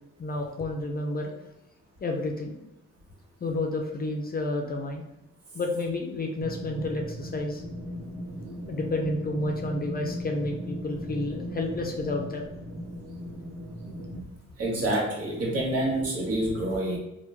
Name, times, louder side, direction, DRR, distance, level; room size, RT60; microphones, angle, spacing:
voice 1, 0.2-1.3 2.0-2.6 3.4-5.1 5.5-7.6 8.7-12.5, left 2 dB, 30° left, 2 dB, 0.5 m, -30 dB
sound 1, 6.4-14.2, equal, 10° right, 0.7 m, -37 dB
voice 2, 14.6-17.0, right 1 dB, 55° right, -2 dB, 1.2 m, -27 dB
3.0 x 2.2 x 3.4 m, 0.92 s
cardioid pair, 90°, 30 cm